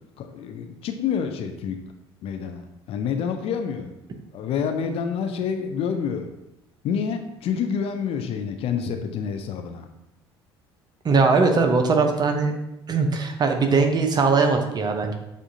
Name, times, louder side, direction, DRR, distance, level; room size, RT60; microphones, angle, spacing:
voice 1, 0.2-1.8 2.2-3.9 4.3-6.3 6.8-9.9, left 7 dB, 50° left, 6 dB, 0.5 m, -28 dB
voice 2, 11.0-12.5 12.9-15.1, right 4 dB, 30° right, 5 dB, 0.6 m, -20 dB
7.0 x 2.5 x 2.6 m, 0.91 s
figure-of-eight pair, 60°, 13 cm